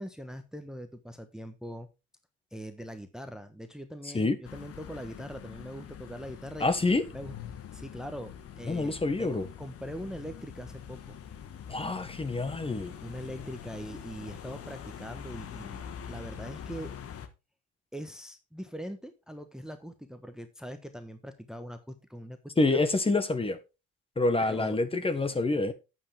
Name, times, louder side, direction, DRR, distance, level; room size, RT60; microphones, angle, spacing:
voice 1, 0.0-1.9 2.5-6.7 7.1-7.3 7.7-11.2 13.0-16.9 17.9-22.8 24.4-24.8 25.2-25.4, equal, ahead, 1.2 m, -42 dB
sound 1, 4.4-17.3, left 8 dB, 45° left, 1.5 m, -44 dB
voice 2, 6.6-7.0 8.7-9.5 11.7-12.9 22.6-23.6 24.2-25.7, left 2 dB, 15° left, 1.3 m, -27 dB
9.3 x 8.6 x 3.5 m
hypercardioid pair, 65°, 34 cm